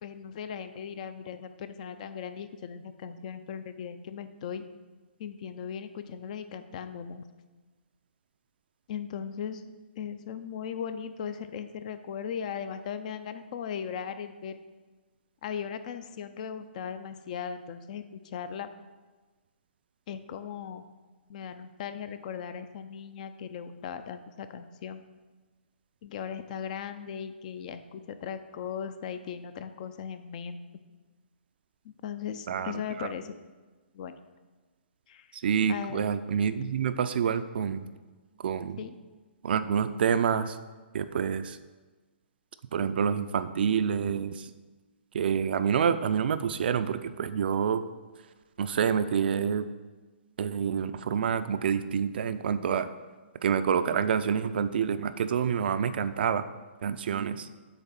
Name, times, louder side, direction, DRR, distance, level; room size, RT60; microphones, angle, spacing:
voice 1, 0.0-4.6 5.2-7.3 8.9-9.6 10.0-14.6 15.4-18.7 20.1-20.8 21.3-25.0 26.0-30.6 31.8-33.4 33.9-34.2 35.1-35.3 35.7-36.0 38.8-38.9, left 7 dB, 40° left, 11 dB, 0.4 m, -38 dB
voice 2, 32.5-33.1 35.3-37.9 38.4-38.8 39.4-40.6 40.9-41.6 42.7-44.5 45.1-47.8 48.6-49.7 50.4-52.9 53.4-56.5 56.8-57.5, right 7 dB, 55° right, 12 dB, 0.4 m, -27 dB
8.1 x 3.2 x 5.9 m, 1.3 s
hypercardioid pair, 150°, 6 cm